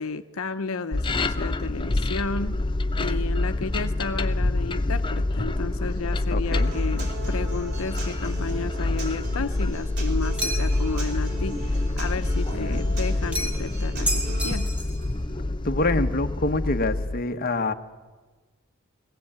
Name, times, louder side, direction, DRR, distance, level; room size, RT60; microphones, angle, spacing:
voice 1, 0.0-2.6 3.0-14.7, left 4 dB, 80° left, 9 dB, 0.8 m, -32 dB
sound 1, 0.9-17.2, left 2 dB, 25° left, 0.7 m, -26 dB
voice 2, 6.3-6.7 12.5-12.9 15.6-17.7, left 2 dB, 45° left, 7 dB, 1.0 m, -26 dB
Human voice / Acoustic guitar, 6.5-14.5, right 3 dB, 55° right, 5.1 m, -40 dB
sound 2, 10.4-10.9 13.3-13.7 14.1-15.0, equal, 5° right, 2.1 m, -30 dB
20.5 x 17.0 x 8.7 m, 1.3 s
head